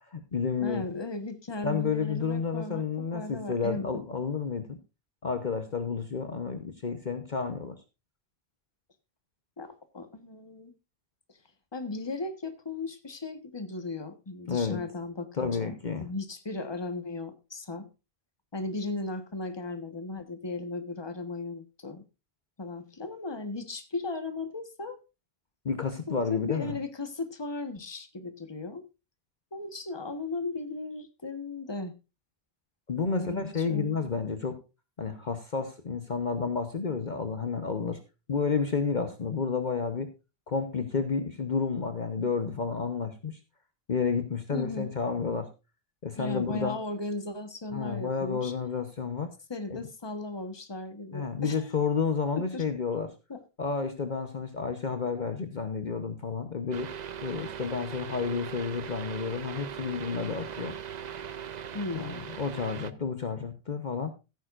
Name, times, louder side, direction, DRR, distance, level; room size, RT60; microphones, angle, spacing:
voice 1, 0.1-0.8 1.6-4.8 5.2-7.7 14.4-14.8 15.3-16.1 25.6-26.8 32.9-34.6 35.0-38.0 38.3-40.1 40.5-43.4 43.9-45.5 46.0-46.8 47.7-49.3 49.7-49.9 51.1-53.1 53.6-56.9 57.2-60.8 61.9-64.1, left 5 dB, 50° left, 8 dB, 1.1 m, -31 dB
voice 2, 0.6-4.0 9.6-10.7 11.7-17.9 18.5-22.0 22.6-25.0 26.1-28.9 29.5-31.9 33.1-34.1 44.5-44.9 46.2-48.5 49.5-51.6 52.3-52.6 53.3-53.4 61.7-62.3, left 3 dB, 25° left, 10 dB, 1.3 m, -36 dB
sound 1, 56.7-62.9, right 8 dB, 50° right, 0.7 m, -40 dB
16.0 x 9.5 x 2.5 m, 0.28 s
omnidirectional pair, 1.0 m